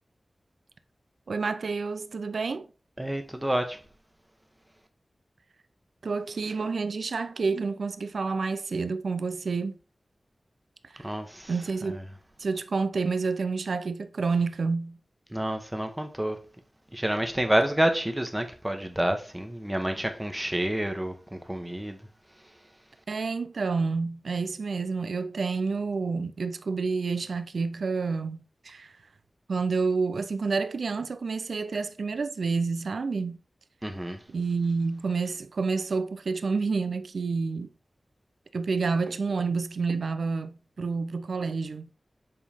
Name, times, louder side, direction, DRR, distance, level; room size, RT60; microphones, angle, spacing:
voice 1, 1.3-2.7 6.0-9.8 11.5-12.0 12.4-15.0 23.1-28.4 28.6-28.9 29.5-33.4 34.3-37.7 38.5-41.9, right 4 dB, 90° right, 0.4 m, -29 dB
voice 2, 3.0-3.8 11.0-11.5 11.8-12.0 15.3-16.4 16.9-22.0 33.8-34.2, right 1 dB, 10° right, 1.1 m, -28 dB
7.4 x 3.9 x 3.5 m
wide cardioid pair, 85°, 0 cm